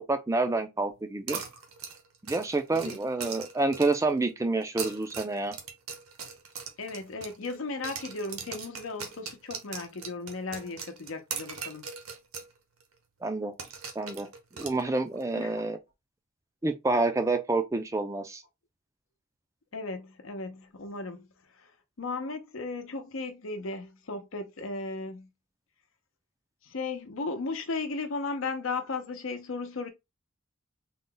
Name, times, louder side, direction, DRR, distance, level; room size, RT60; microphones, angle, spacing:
voice 1, 0.1-1.4 2.2-5.5 13.2-13.5 14.0-14.3 14.5-15.8 16.6-18.4, right 2 dB, 15° right, 0.4 m, -28 dB
sound 1, 1.3-4.1 4.6-7.6 7.8-12.5 12.8-12.9 13.6-15.2, right 6 dB, 80° right, 1.0 m, -40 dB
voice 2, 6.8-11.9 15.4-15.6 19.7-21.3 22.0-25.3 26.6-29.9, left 3 dB, 70° left, 0.7 m, -36 dB
3.9 x 2.2 x 3.8 m
head